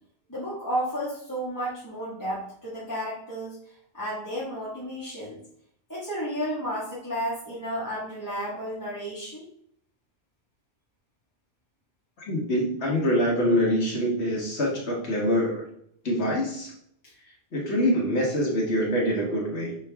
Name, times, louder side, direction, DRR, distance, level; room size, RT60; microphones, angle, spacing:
voice 1, 0.3-3.6 3.9-5.4 5.9-9.4, equal, 15° left, -8 dB, 1.6 m, -32 dB
voice 2, 12.3-15.6 16.0-16.7 17.5-19.7, equal, 85° left, -3 dB, 1.7 m, -25 dB
5.9 x 5.0 x 3.5 m, 0.67 s
omnidirectional pair, 1.1 m